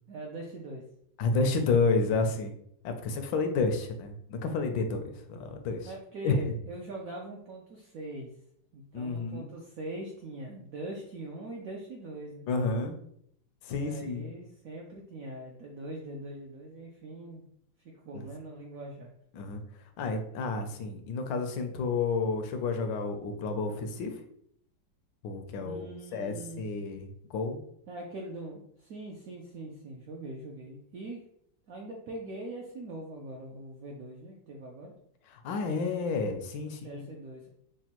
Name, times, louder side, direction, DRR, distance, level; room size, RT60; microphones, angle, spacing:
voice 1, 0.1-0.8 5.8-8.3 8.7-12.4 13.7-17.4 17.8-19.1 25.6-26.8 27.9-31.2 31.7-34.9 36.6-37.5, right 2 dB, 75° right, -1 dB, 0.8 m, -42 dB
voice 2, 1.2-2.5 2.8-5.9 6.2-6.5 8.9-9.5 12.5-12.9 13.6-14.3 18.1-18.3 19.3-19.6 20.0-24.2 25.2-25.8 26.1-27.6 35.4-37.1, left 4 dB, 80° left, 6 dB, 1.3 m, -30 dB
6.2 x 2.2 x 2.9 m, 0.70 s
omnidirectional pair, 2.1 m